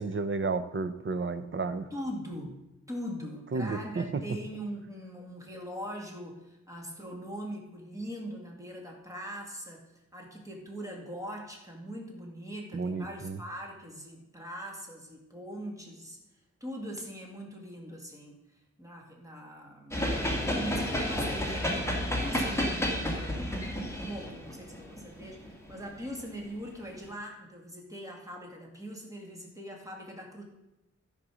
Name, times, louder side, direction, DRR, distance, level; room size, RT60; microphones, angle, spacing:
voice 1, 0.0-1.9 3.5-4.2 12.7-13.4, right 4 dB, 45° right, 11 dB, 0.8 m, -32 dB
voice 2, 1.9-2.6 2.9-9.8 10.1-16.2 16.6-18.4 18.8-20.1 20.4-30.4, equal, 10° right, 0 dB, 2.4 m, -41 dB
sound 1, 19.9-26.2, equal, 10° left, 1.8 m, -31 dB
13.0 x 5.3 x 6.3 m, 0.92 s
wide cardioid pair, 115°, 29 cm